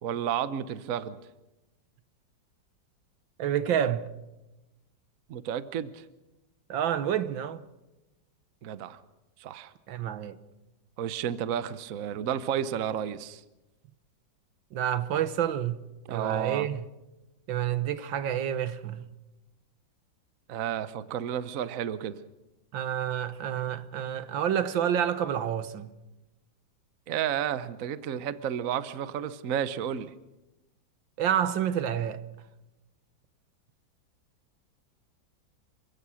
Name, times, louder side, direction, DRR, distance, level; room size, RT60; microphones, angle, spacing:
voice 1, 0.0-1.2 5.3-6.0 8.6-9.0 9.4-9.7 11.0-13.4 16.1-16.7 20.5-22.2 27.1-30.1, right 9 dB, 55° right, 1.1 m, -32 dB
voice 2, 3.4-4.1 6.7-7.6 9.9-10.4 14.7-15.8 16.1-16.8 17.5-19.0 22.7-25.9 31.2-32.2, right 9 dB, 75° right, 1.7 m, -28 dB
28.0 x 16.0 x 6.3 m
omnidirectional pair, 2.1 m